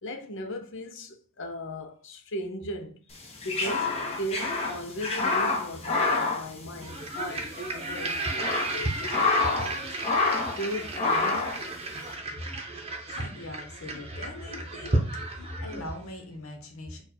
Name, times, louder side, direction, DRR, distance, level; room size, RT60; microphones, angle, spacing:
voice 1, 0.0-3.0 3.4-10.0 10.5-11.6 13.9-14.0 15.4-15.5, equal, 65° left, 0.7 m, -37 dB
sound 1, 3.2-7.3 7.5-7.6 8.2-9.7 10.0-10.6 11.0-11.6, left 3 dB, 30° left, 1.0 m, -27 dB
sound 2, 6.8-16.1, right 2 dB, 30° right, 0.8 m, -33 dB
voice 2, 13.1-15.0 15.3-17.0, left 1 dB, 90° left, 1.1 m, -40 dB
4.4 x 2.5 x 4.3 m
head